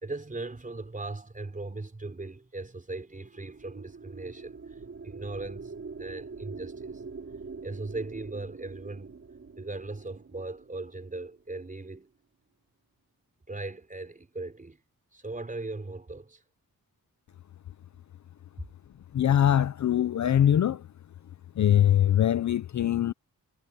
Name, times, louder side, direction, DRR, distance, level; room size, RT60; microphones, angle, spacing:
voice 1, 0.0-5.7 6.0-7.0 7.6-9.2 9.6-12.1 13.5-14.8 15.1-16.4, right 2 dB, 20° right, 4.8 m, -38 dB
sound 1, 3.1-11.6, right 4 dB, 40° right, 4.7 m, -44 dB
voice 2, 19.1-20.8 21.6-23.1, left 10 dB, 50° left, 0.5 m, -22 dB
wide cardioid pair, 170°, 37 cm